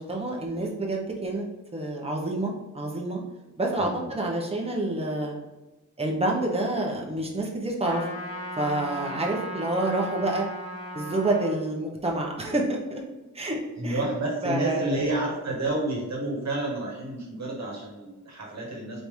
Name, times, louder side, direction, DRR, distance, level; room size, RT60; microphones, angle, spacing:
voice 1, 0.0-1.5 1.7-3.2 3.6-5.4 6.0-8.1 8.6-10.5 10.9-13.0 13.3-14.1 14.4-14.9, right 2 dB, 20° right, -1 dB, 0.9 m, -28 dB
voice 2, 3.8-4.1 13.7-19.0, right 2 dB, 55° right, -2 dB, 1.3 m, -30 dB
Trumpet, 7.8-11.5, right 1 dB, 50° left, 1.1 m, -36 dB
4.2 x 3.3 x 3.4 m, 1.1 s
wide cardioid pair, 125°, 32 cm